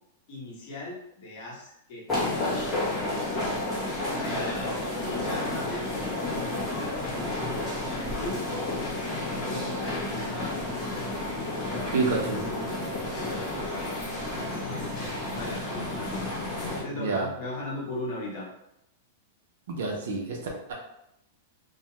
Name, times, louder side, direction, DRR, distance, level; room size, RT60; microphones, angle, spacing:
voice 1, 0.3-3.4 4.0-4.8 5.2-5.9 6.6-7.3 7.8-8.4 9.4-9.8 10.3-10.6 13.3-16.1 16.8-18.5, left 2 dB, 45° left, -4 dB, 0.9 m, -38 dB
sound 1, 2.1-16.8, left 2 dB, 10° left, 0.6 m, -31 dB
voice 2, 11.9-12.4 16.9-17.3 19.7-20.4 20.7-20.8, right 4 dB, 65° right, 0 dB, 0.6 m, -28 dB
2.3 x 2.1 x 2.9 m, 0.81 s
supercardioid pair, 175°, 0 cm